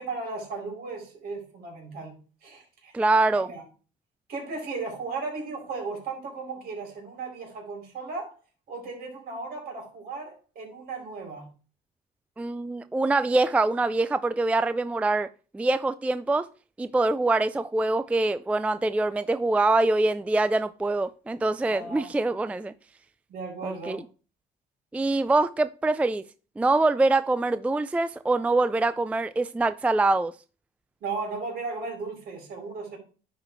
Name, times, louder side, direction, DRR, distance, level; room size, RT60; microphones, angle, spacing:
voice 1, 0.0-2.2 2.4-2.9 3.3-3.6 4.3-8.3 8.7-11.5 21.7-22.1 23.3-24.0 31.0-33.0, right 4 dB, 65° right, 4.3 m, -36 dB
voice 2, 2.9-3.5 12.4-15.3 15.5-16.5 16.8-22.7 23.6-24.0 24.9-26.2 26.6-30.3, right 2 dB, 10° right, 0.3 m, -24 dB
10.5 x 4.1 x 4.5 m
cardioid pair, 110°, 17 cm